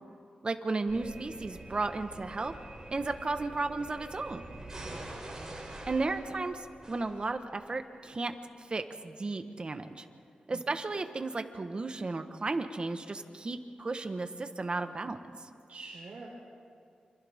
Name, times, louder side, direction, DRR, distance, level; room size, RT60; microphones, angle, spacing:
voice 1, 0.4-2.5 2.9-4.4 5.9-8.3 8.7-10.0 10.5-15.2, right 3 dB, 40° right, 7 dB, 1.3 m, -34 dB
sound 1, 0.9-7.7, right 1 dB, 25° right, 6.5 m, -46 dB
voice 2, 4.7-5.5 10.5-10.6 15.7-16.3, right 3 dB, 65° right, -5 dB, 4.3 m, -47 dB
28.5 x 27.0 x 3.7 m, 2.3 s
wide cardioid pair, 90°, 3 cm